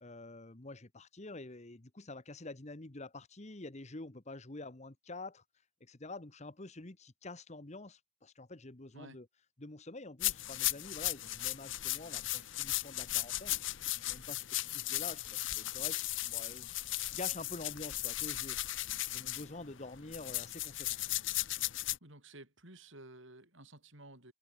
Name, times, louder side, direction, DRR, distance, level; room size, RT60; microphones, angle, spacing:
voice 1, 0.0-5.4 5.8-9.3 9.6-13.6 13.9-16.7 17.1-18.8 19.1-21.0, left 2 dB, 35° left, 1.3 m, -47 dB
sound 1, 10.2-22.0, left 16 dB, 60° left, 0.9 m, -36 dB
voice 2, 21.7-24.3, right 2 dB, 60° right, 6.7 m, -54 dB
head